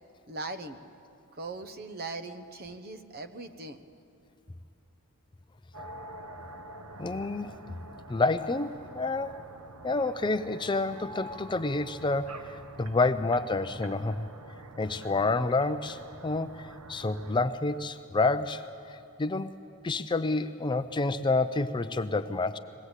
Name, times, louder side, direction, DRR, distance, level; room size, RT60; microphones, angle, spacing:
voice 1, 0.3-0.8 1.3-3.8, right 3 dB, 45° right, 8 dB, 1.0 m, -39 dB
sound 1, 5.7-17.5, right 1 dB, 80° right, 1.0 m, -46 dB
voice 2, 7.0-7.6 8.1-9.4 9.8-14.3 14.8-19.5 19.8-22.6, left 3 dB, 20° left, 11 dB, 0.4 m, -29 dB
21.0 x 18.0 x 8.1 m, 2.8 s
head